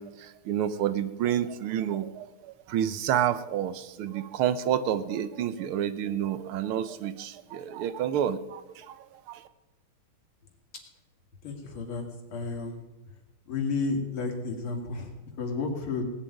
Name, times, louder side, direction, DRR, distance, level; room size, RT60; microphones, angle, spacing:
voice 1, 0.0-9.5, right 10 dB, 90° right, 13 dB, 1.8 m, -29 dB
voice 2, 11.4-12.0 12.3-13.2 13.5-16.0, left 4 dB, 85° left, 3 dB, 3.3 m, -32 dB
18.5 x 7.2 x 9.3 m, 1.0 s
omnidirectional pair, 2.3 m